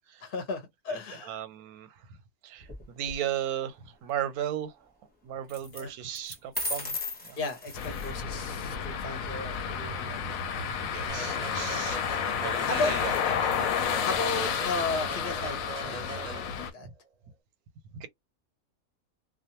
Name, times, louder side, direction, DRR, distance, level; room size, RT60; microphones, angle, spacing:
voice 1, 0.2-1.4 5.7-5.9 7.4-10.7 12.7-12.9 14.0-16.9, left 3 dB, 45° left, 0.7 m, -35 dB
voice 2, 1.2-2.1 2.4-4.9 5.2-7.0 7.2-7.4 10.7-13.1 13.7-14.0 16.8-16.9 17.9-18.1, right 11 dB, 85° right, 1.1 m, -36 dB
sound 1, 2.6-3.2 5.5-5.8 6.1-8.2, left 1 dB, 10° left, 0.8 m, -36 dB
sound 2, 7.7-16.7, left 7 dB, 75° left, 0.9 m, -31 dB
sound 3, 11.1-16.9, right 4 dB, 40° right, 0.5 m, -41 dB
2.4 x 2.2 x 2.8 m
omnidirectional pair, 1.5 m